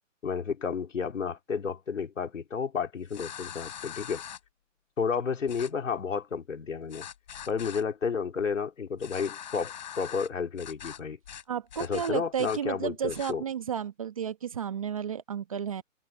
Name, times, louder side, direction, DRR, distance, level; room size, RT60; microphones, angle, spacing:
voice 1, 0.2-4.2 5.0-7.1 7.5-11.2 11.8-13.4, left 6 dB, 75° left, 3.4 m, -31 dB
sound 1, 3.1-4.4 5.5-5.7 6.9-7.8 9.0-10.3 10.6-11.0 11.3-11.4 11.7-12.6 13.1-13.3, left 10 dB, 35° left, 5.2 m, -42 dB
voice 2, 11.5-15.8, right 8 dB, 25° right, 1.1 m, -32 dB
hypercardioid pair, 175°, 38 cm